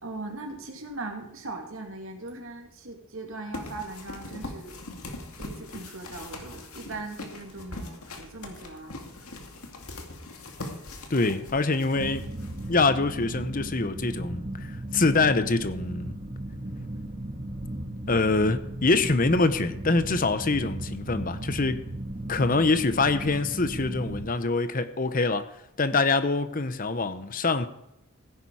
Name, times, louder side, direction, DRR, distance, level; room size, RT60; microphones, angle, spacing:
voice 1, 0.0-4.8 5.4-8.9 10.6-10.8 25.9-26.0, right 2 dB, 65° right, 2.6 m, -39 dB
sound 1, 3.5-13.1, left 2 dB, 85° left, 2.3 m, -41 dB
voice 2, 11.1-12.3 12.7-16.2 18.1-21.8 22.3-27.7, left 3 dB, 40° left, 0.8 m, -25 dB
sound 2, 11.9-24.3, right 1 dB, 35° right, 1.9 m, -36 dB
16.0 x 9.8 x 4.8 m
head